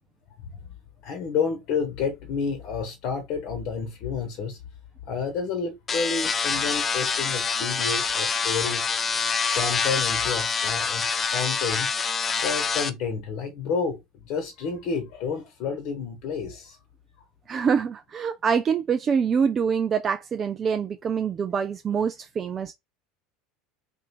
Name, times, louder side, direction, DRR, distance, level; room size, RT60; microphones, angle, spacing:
voice 1, 1.0-4.6 5.1-8.8 9.4-11.0 11.3-11.9 12.4-16.8, left 5 dB, 55° left, 1.0 m, -30 dB
sound 1, 5.9-12.9, left 5 dB, 30° left, 0.5 m, -26 dB
voice 2, 17.5-22.7, right 6 dB, 35° right, 0.4 m, -25 dB
3.1 x 2.6 x 4.2 m
hypercardioid pair, 80°, 0 cm